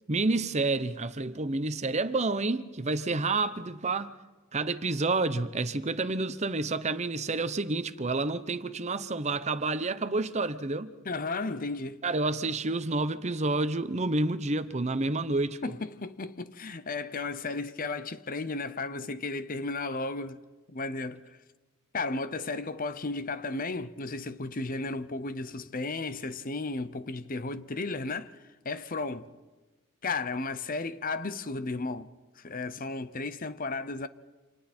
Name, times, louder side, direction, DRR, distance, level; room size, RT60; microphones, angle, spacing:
voice 1, 0.1-4.1 4.5-10.9 12.0-15.6, right 3 dB, 30° right, 0.8 m, -29 dB
voice 2, 11.0-12.0 15.6-20.4 20.7-21.2 21.9-28.3 28.6-29.3 30.0-32.1 32.4-34.1, left 3 dB, 40° left, 0.8 m, -34 dB
29.0 x 27.0 x 4.4 m
head